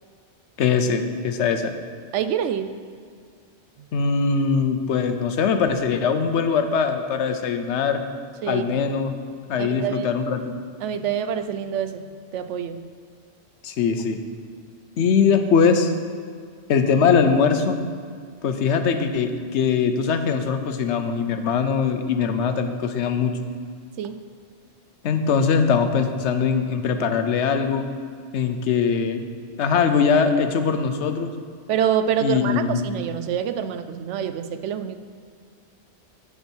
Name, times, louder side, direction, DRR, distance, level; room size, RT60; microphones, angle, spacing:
voice 1, 0.6-1.7 3.9-8.0 8.5-9.1 9.5-10.5 13.6-14.2 15.0-15.9 16.7-17.8 18.4-23.3 25.0-27.9 28.3-29.3 29.6-31.3 32.2-32.8, left 6 dB, 80° left, 8 dB, 1.0 m, -21 dB
voice 2, 2.1-2.7 3.8-3.9 8.4-8.8 9.6-10.1 10.8-12.8 24.0-24.2 31.7-35.0, right 8 dB, 85° right, 10 dB, 0.9 m, -26 dB
8.4 x 8.3 x 4.4 m, 2.1 s
omnidirectional pair, 1.2 m